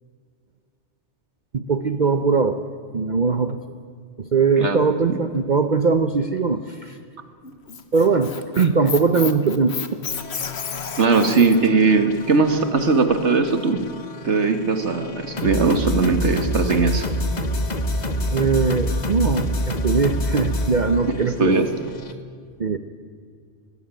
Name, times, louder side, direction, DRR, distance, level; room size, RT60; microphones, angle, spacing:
voice 1, 1.5-2.6 2.9-3.6 4.2-7.0 7.9-10.0 18.3-21.6 22.6-22.8, right 4 dB, 45° right, 10 dB, 0.9 m, -20 dB
Squeak, 7.4-11.7, left 6 dB, 65° left, 1.4 m, -31 dB
sound 1, 10.1-22.1, left 1 dB, 40° left, 1.4 m, -28 dB
voice 2, 11.0-13.8 14.2-17.1 21.2-21.7, right 4 dB, 70° right, 9 dB, 1.9 m, -19 dB
20.5 x 15.5 x 9.1 m, 2.2 s
omnidirectional pair, 1.2 m